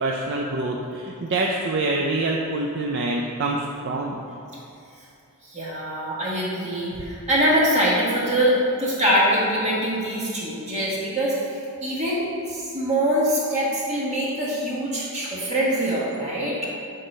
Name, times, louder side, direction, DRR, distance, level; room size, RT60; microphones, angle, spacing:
voice 1, 0.0-4.2 6.9-7.0, right 2 dB, 55° right, -1 dB, 0.4 m, -26 dB
voice 2, 5.4-16.6, equal, 30° right, -6 dB, 1.5 m, -23 dB
6.2 x 3.8 x 5.4 m, 2.6 s
head